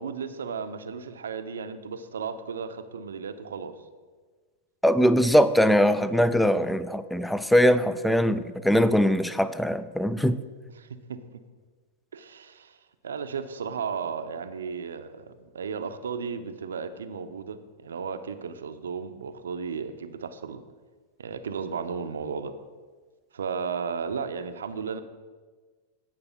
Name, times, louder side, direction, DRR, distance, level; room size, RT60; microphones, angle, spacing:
voice 1, 0.0-3.7 10.8-11.2 12.1-12.8 13.0-20.6 21.2-22.5 23.3-25.0, right 6 dB, 85° right, 10 dB, 0.6 m, -34 dB
voice 2, 4.8-10.4, equal, 5° left, 14 dB, 0.4 m, -21 dB
9.7 x 4.7 x 5.6 m, 1.4 s
hypercardioid pair, 110°, 0 cm